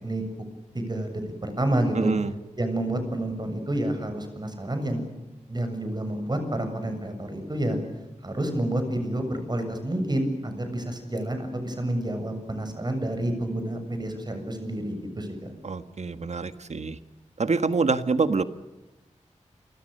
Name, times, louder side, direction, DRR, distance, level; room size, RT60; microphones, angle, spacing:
voice 1, 0.7-2.1 2.6-5.0 5.5-7.8 8.2-15.5, right 1 dB, 35° right, 7 dB, 7.2 m, -29 dB
voice 2, 1.9-2.3 15.6-17.0 17.4-18.4, right 4 dB, 65° right, 11 dB, 1.6 m, -26 dB
29.5 x 25.0 x 6.7 m, 1.1 s
wide cardioid pair, 95°, 13 cm